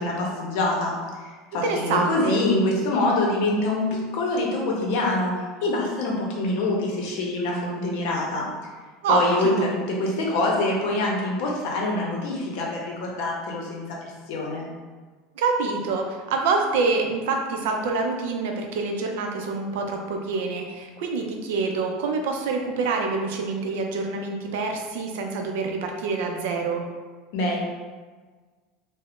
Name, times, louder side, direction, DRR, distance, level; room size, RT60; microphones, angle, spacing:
voice 1, 0.0-5.4 5.6-8.5 9.1-14.0 14.3-14.7 27.3-27.6, left 2 dB, 60° left, -2 dB, 0.6 m, -25 dB
voice 2, 1.6-2.4 9.0-9.7 15.4-26.8, right 4 dB, 80° right, 3 dB, 0.4 m, -26 dB
2.4 x 2.0 x 3.5 m, 1.4 s
supercardioid pair, 160°, 0 cm